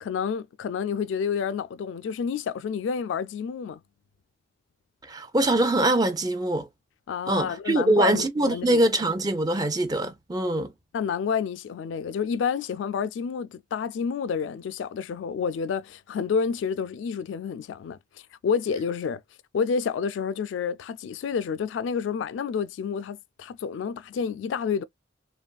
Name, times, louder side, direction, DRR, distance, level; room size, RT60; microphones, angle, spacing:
voice 1, 0.0-3.8 7.1-8.8 10.9-18.0 18.4-19.2 19.5-24.8, left 6 dB, 85° left, 0.3 m, -29 dB
voice 2, 5.1-6.7 7.3-10.7, right 1 dB, 20° right, 0.5 m, -23 dB
3.1 x 2.3 x 2.2 m
head